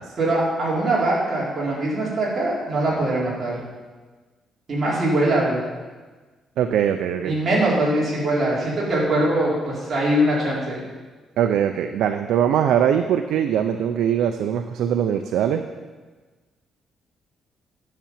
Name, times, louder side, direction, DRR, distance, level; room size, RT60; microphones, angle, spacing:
voice 1, 0.2-3.6 4.7-5.6 7.2-10.8, right 1 dB, 35° right, -6 dB, 4.3 m, -22 dB
voice 2, 6.6-7.3 11.4-15.6, right 9 dB, 80° right, 6 dB, 0.6 m, -21 dB
10.5 x 6.9 x 7.3 m, 1.3 s
cardioid pair, 145°, 0 cm